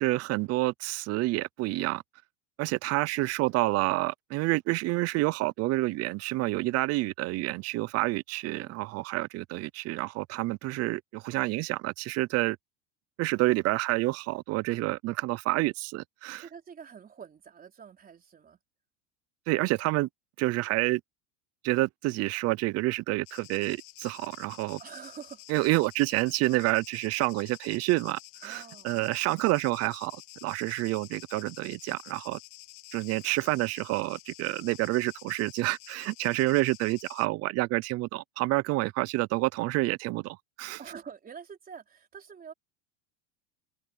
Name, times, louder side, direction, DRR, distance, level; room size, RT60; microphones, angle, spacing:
voice 1, 0.0-2.0 2.6-12.6 13.2-16.4 19.5-20.1 20.4-21.0 21.6-24.8 25.5-32.4 32.9-40.8, right 20 dB, 40° right, 0.6 m, -28 dB
voice 2, 16.4-18.6 24.8-25.4 28.4-29.0 37.7-37.8 40.8-42.5, right 7 dB, 25° right, 3.9 m, -46 dB
sound 1, 23.3-37.3, left 21 dB, 75° left, 1.4 m, -50 dB
open air
supercardioid pair, 130°, 37 cm